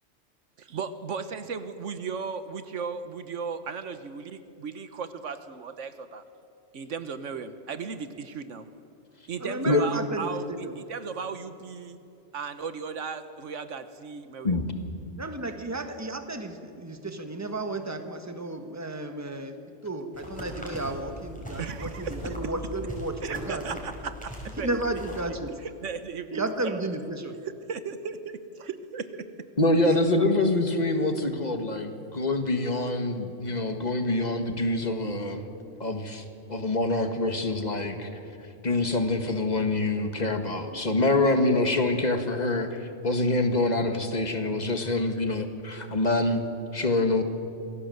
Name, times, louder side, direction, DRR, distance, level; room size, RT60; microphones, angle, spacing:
voice 1, 0.7-6.2 6.7-8.7 9.3-12.0 12.3-14.6 21.6-22.3 23.2-25.0 25.8-26.8 27.7-29.2 29.8-30.2, right 5 dB, 80° right, 11 dB, 1.4 m, -36 dB
voice 2, 9.4-10.7 15.2-19.6 19.8-24.1 24.6-25.5 26.3-27.3, right 2 dB, 15° right, 7 dB, 1.5 m, -33 dB
sound 1, 20.1-25.3, equal, 5° left, 5.4 m, -39 dB
voice 3, 29.6-35.5 35.8-36.2 36.5-38.1 38.6-42.7 43.0-46.4 46.7-47.2, left 2 dB, 35° left, 6 dB, 1.9 m, -25 dB
26.0 x 18.0 x 7.9 m, 2.7 s
omnidirectional pair, 1.2 m